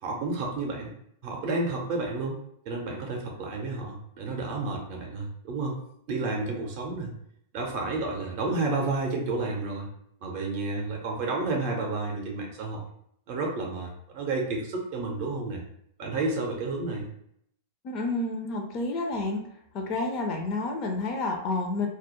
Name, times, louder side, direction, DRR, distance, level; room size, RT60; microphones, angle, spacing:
voice 1, 0.0-0.9 1.2-2.4 2.7-5.8 6.1-7.1 7.5-9.9 10.2-12.8 13.3-15.6 16.0-17.1, right 3 dB, 45° right, 0 dB, 0.5 m, -31 dB
voice 2, 17.8-19.5 19.7-21.9, left 2 dB, 40° left, 3 dB, 0.4 m, -29 dB
2.2 x 2.0 x 2.9 m, 0.72 s
figure-of-eight pair, 95°, 0 cm